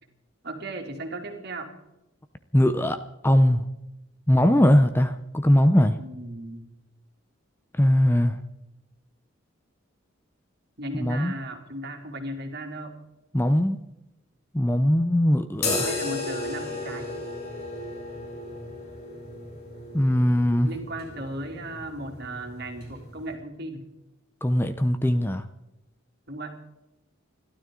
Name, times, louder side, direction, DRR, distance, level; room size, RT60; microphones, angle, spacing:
voice 1, 0.4-1.7 6.0-6.7 10.8-12.9 15.8-17.1 20.6-23.9 26.3-26.5, right 1 dB, 50° right, 3 dB, 2.6 m, -36 dB
voice 2, 2.5-3.6 4.3-6.0 7.8-8.4 10.9-11.3 13.3-13.8 14.5-15.9 19.9-20.7 24.4-25.4, left 1 dB, 10° left, 9 dB, 0.6 m, -21 dB
sound 1, 15.5-23.3, left 2 dB, 45° left, 4.8 m, -34 dB
30.0 x 12.5 x 3.8 m, 0.94 s
head